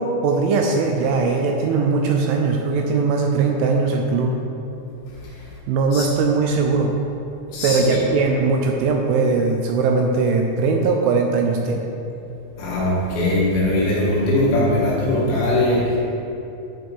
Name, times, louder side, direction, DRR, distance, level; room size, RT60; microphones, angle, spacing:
voice 1, 0.0-4.3 5.7-6.9 7.6-11.8, right 4 dB, 80° right, 2 dB, 2.8 m, -20 dB
voice 2, 7.5-8.0 12.6-16.0, left 1 dB, 65° left, -6 dB, 3.7 m, -20 dB
11.0 x 4.9 x 4.6 m, 2.9 s
omnidirectional pair, 5.8 m